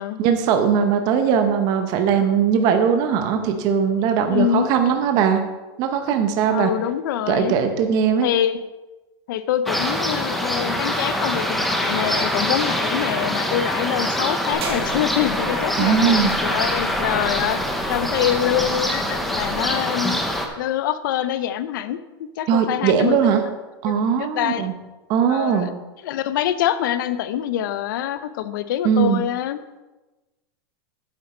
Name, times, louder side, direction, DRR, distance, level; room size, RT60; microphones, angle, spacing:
voice 1, 0.2-5.4 5.8-6.7 7.3-8.3 15.8-16.3 22.5-23.5 23.8-24.7 25.1-25.7 28.8-29.2, right 7 dB, 30° right, 6 dB, 0.8 m, -19 dB
voice 2, 4.3-4.7 6.5-7.6 8.2-8.7 9.3-17.6 17.9-20.2 20.6-23.2 23.9-24.7 25.3-25.7 26.0-29.6, left 11 dB, 55° left, 13 dB, 0.6 m, -25 dB
sound 1, 9.7-20.5, equal, ahead, 0.5 m, -24 dB
sound 2, 14.5-19.7, right 2 dB, 80° right, 2.3 m, -36 dB
8.8 x 8.0 x 4.3 m, 1.1 s
supercardioid pair, 170°, 13 cm